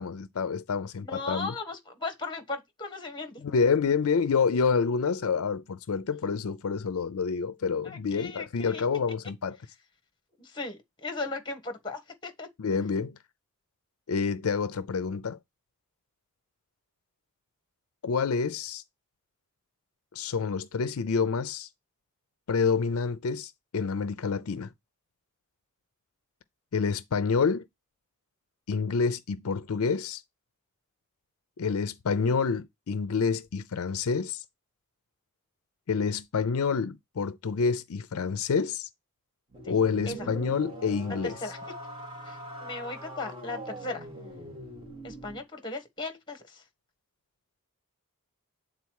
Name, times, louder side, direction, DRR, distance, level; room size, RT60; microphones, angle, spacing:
voice 1, 0.0-1.5 3.4-9.6 12.6-13.2 14.1-15.4 18.0-18.8 20.1-21.7 22.5-24.7 26.7-27.7 28.7-30.2 31.6-34.4 35.9-38.9 39.7-41.3, left 5 dB, 70° left, 0.5 m, -28 dB
voice 2, 1.0-3.4 7.8-8.8 10.4-12.5 39.6-39.8 40.1-40.3 41.2-41.7 42.2-44.1 45.0-46.6, left 3 dB, 20° left, 1.4 m, -37 dB
sound 1, 39.5-45.4, right 1 dB, 20° right, 2.5 m, -42 dB
8.2 x 3.8 x 4.7 m
head